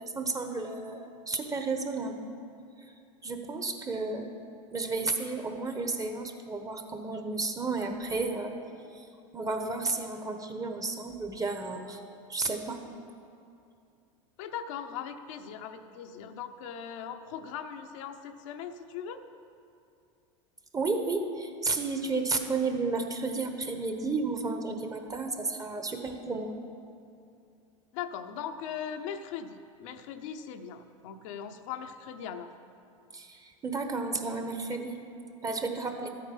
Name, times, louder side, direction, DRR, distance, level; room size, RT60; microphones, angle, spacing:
voice 1, 0.0-2.2 3.2-4.3 4.7-8.5 8.9-9.1 9.3-12.0 12.3-12.9 20.7-26.5 33.1-35.0 35.4-36.1, right 3 dB, 20° right, 5 dB, 1.2 m, -32 dB
voice 2, 14.4-19.2 27.9-32.5, left 8 dB, 70° left, 6 dB, 0.8 m, -39 dB
12.5 x 8.5 x 5.4 m, 2.6 s
hypercardioid pair, 100°, 17 cm